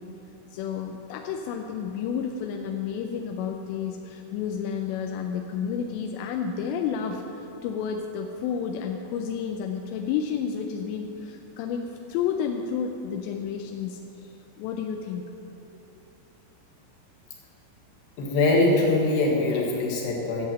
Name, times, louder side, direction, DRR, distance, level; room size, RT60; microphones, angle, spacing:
voice 1, 0.5-14.3 14.6-15.2, left 7 dB, 80° left, 3 dB, 2.6 m, -31 dB
voice 2, 18.2-20.5, left 2 dB, 65° left, -1 dB, 3.5 m, -22 dB
12.0 x 7.8 x 7.5 m, 2.9 s
omnidirectional pair, 5.5 m